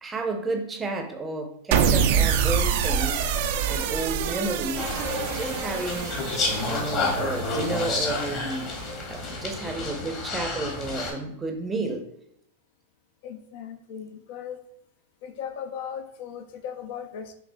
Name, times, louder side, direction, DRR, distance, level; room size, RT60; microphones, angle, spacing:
voice 1, 0.0-3.3 3.7-4.9 5.3-6.2 6.5-8.7 9.1-12.0, right 2 dB, 15° right, 4 dB, 0.6 m, -31 dB
sound 1, 1.7-8.0, right 7 dB, 60° right, 0.4 m, -26 dB
sound 2, 4.8-11.1, left 3 dB, 40° left, 1.2 m, -30 dB
voice 2, 13.2-14.6 15.2-17.3, left 8 dB, 60° left, 6 dB, 0.5 m, -37 dB
5.9 x 2.4 x 2.2 m, 0.76 s
hypercardioid pair, 115°, 0 cm